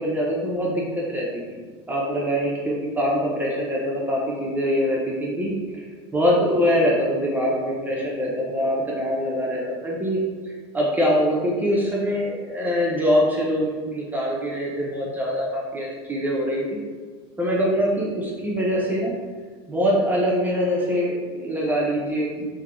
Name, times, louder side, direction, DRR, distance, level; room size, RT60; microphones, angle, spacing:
voice 1, 0.0-1.6 1.9-5.8 6.1-10.2 10.4-16.8 17.4-19.1 19.7-22.5, equal, 10° right, -4 dB, 0.8 m, -24 dB
3.6 x 2.8 x 3.7 m, 1.5 s
supercardioid pair, 105°, 14 cm